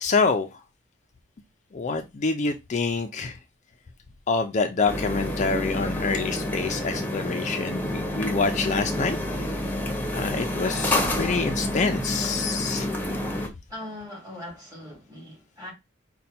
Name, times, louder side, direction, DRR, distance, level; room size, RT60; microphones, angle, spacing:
voice 1, 0.0-0.5 1.7-3.4 4.3-9.2 10.1-12.9, left 4 dB, 40° left, 0.4 m, -26 dB
sound 1, 4.9-13.5, left 1 dB, 10° left, 0.9 m, -28 dB
voice 2, 13.7-15.7, left 1 dB, 20° right, 2.8 m, -40 dB
5.4 x 2.2 x 4.1 m
head